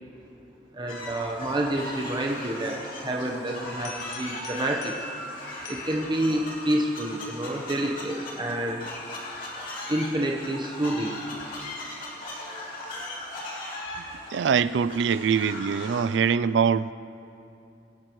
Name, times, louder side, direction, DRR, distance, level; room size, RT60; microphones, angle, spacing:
voice 1, 0.7-4.9 5.7-8.9 9.9-11.1, right 1 dB, 25° right, -1 dB, 1.0 m, -28 dB
sound 1, 0.9-16.2, left 1 dB, 50° left, 2.8 m, -38 dB
sound 2, 3.9-6.8, left 3 dB, 75° left, 1.7 m, -44 dB
voice 2, 14.3-16.9, right 6 dB, 80° right, 16 dB, 0.4 m, -23 dB
24.5 x 12.0 x 3.1 m, 2.8 s
head